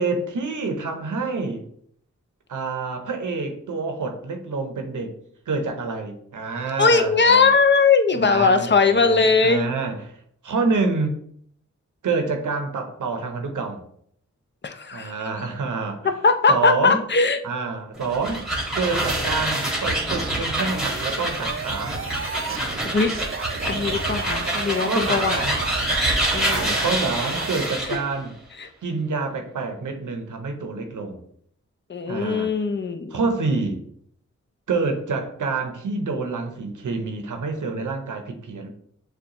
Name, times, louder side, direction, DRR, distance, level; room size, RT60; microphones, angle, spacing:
voice 1, 0.0-1.6 2.5-5.1 5.5-7.5 8.2-10.2 10.4-11.2 12.0-13.8 14.9-16.1 16.5-17.0 17.4-18.5 18.7-22.1 24.8-25.6 26.5-28.4 28.8-31.2 32.1-32.5 33.1-33.8 34.7-38.7, right 4 dB, 90° right, 5 dB, 0.7 m, -27 dB
voice 2, 6.8-9.7 14.6-15.1 16.2-17.4 22.9-23.1 23.7-26.0 26.3-26.7 28.6-28.7 31.9-33.1, left 4 dB, 40° left, 7 dB, 0.5 m, -20 dB
sound 1, 17.9-28.0, right 1 dB, ahead, 1.4 m, -26 dB
sound 2, 20.6-27.7, right 6 dB, 45° right, 0.4 m, -34 dB
6.5 x 2.3 x 2.9 m, 0.66 s
cardioid pair, 40°, 30 cm